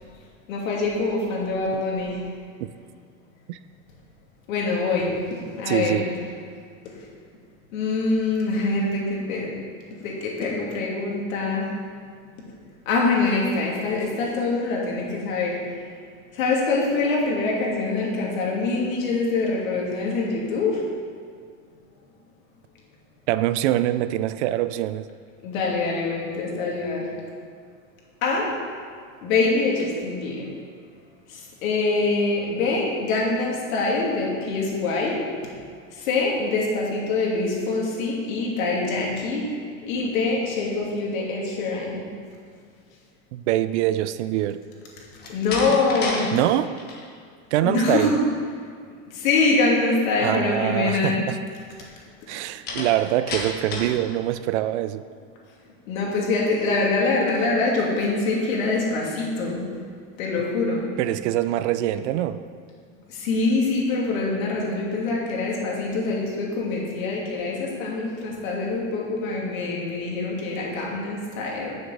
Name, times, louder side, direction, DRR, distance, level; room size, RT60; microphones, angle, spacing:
voice 1, 0.5-2.2 4.5-5.2 5.6-6.1 6.8-6.9 7.7-9.5 10.0-11.7 12.9-15.6 16.3-20.8 25.4-27.1 28.2-28.5 29.2-30.5 31.3-35.2 35.9-42.0 45.3-46.4 47.6-48.2 49.1-51.2 55.9-59.6 60.2-60.9 63.1-71.7, left 3 dB, 75° left, -3 dB, 2.8 m, -24 dB
voice 2, 5.7-6.1 23.3-25.1 43.3-44.6 46.3-46.7 47.5-48.2 50.2-51.4 52.3-55.0 61.0-62.4, right 13 dB, 60° right, 13 dB, 0.5 m, -24 dB
Slam, 45.2-46.3 46.6-47.0 52.7-54.0, left 3 dB, 25° left, 1.3 m, -31 dB
7.2 x 6.4 x 7.7 m, 2.1 s
supercardioid pair, 160°, 41 cm